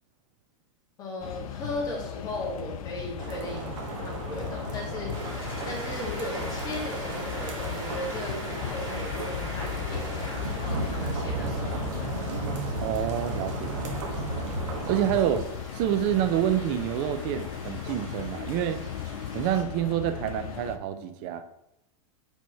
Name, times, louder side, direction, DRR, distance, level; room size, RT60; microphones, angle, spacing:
voice 1, 1.0-3.7 4.0-5.4 5.6-12.3, left 1 dB, 20° left, -3 dB, 1.8 m, -37 dB
sound 1, 1.2-20.8, left 10 dB, 90° left, 0.4 m, -37 dB
sound 2, 3.2-15.4, right 4 dB, 65° right, 1.2 m, -35 dB
sound 3, 5.1-19.6, equal, 20° right, 2.1 m, -42 dB
voice 2, 12.8-14.1 14.9-15.4 15.7-18.8 19.3-21.4, right 11 dB, 35° right, 10 dB, 0.5 m, -28 dB
5.1 x 3.5 x 5.6 m, 0.85 s
supercardioid pair, 160°, 17 cm